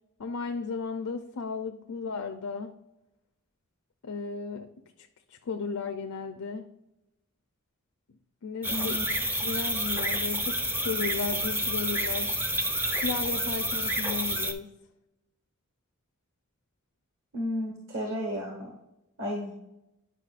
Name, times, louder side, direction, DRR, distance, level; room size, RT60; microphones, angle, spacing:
voice 1, 0.2-2.8 4.0-4.7 5.0-6.7 8.4-9.0 9.4-12.3 12.9-14.7, left 5 dB, 85° left, 5 dB, 0.5 m, -35 dB
sound 1, 8.6-14.5, right 1 dB, 10° right, 0.5 m, -29 dB
voice 2, 8.7-9.0 17.3-18.7 19.2-19.5, equal, 60° right, 0 dB, 1.3 m, -33 dB
9.9 x 5.4 x 2.4 m, 0.91 s
head